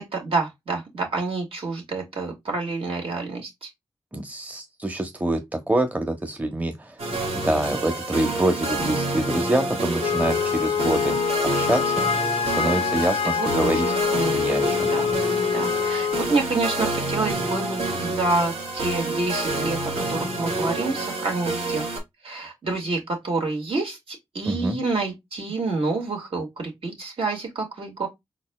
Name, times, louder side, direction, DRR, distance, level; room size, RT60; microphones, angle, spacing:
voice 1, 0.0-3.7 13.3-14.4 14.9-15.1 15.5-21.9 22.2-28.1, right 3 dB, 65° right, 2.0 m, -28 dB
voice 2, 4.1-7.0 7.3-11.2 11.4-12.1 12.4-14.0 14.3-14.9 24.5-24.8, right 1 dB, 15° right, 0.9 m, -26 dB
sound 1, 7.0-22.0, right 2 dB, 85° right, 1.7 m, -28 dB
Wind instrument woodwind instrument, 10.0-16.3, left 7 dB, 70° left, 0.4 m, -25 dB
4.1 x 4.1 x 2.3 m
cardioid pair, 45°, 10 cm